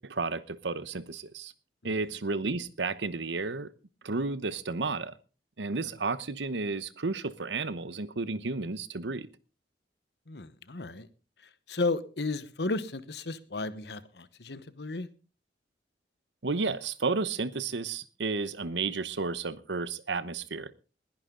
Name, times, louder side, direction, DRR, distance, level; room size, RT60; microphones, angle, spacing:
voice 1, 0.0-1.5 1.8-3.7 4.0-5.1 5.6-9.3 16.4-20.7, right 3 dB, 85° right, 0.9 m, -32 dB
voice 2, 10.3-11.1 11.7-15.1, left 3 dB, 70° left, 1.1 m, -33 dB
20.5 x 10.5 x 3.8 m
head